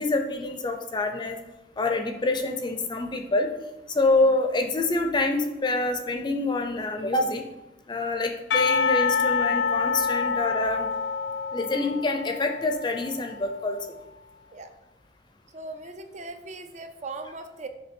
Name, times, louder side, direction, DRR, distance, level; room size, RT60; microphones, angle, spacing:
voice 1, 0.0-1.4 1.8-3.5 3.9-7.4 7.9-10.9 11.5-13.8, left 2 dB, 25° left, 5 dB, 0.5 m, -26 dB
Percussion, 8.5-13.4, left 5 dB, 80° left, 0.5 m, -26 dB
voice 2, 15.5-17.7, right 3 dB, 40° right, 8 dB, 0.5 m, -39 dB
6.8 x 3.3 x 5.2 m, 1.0 s
head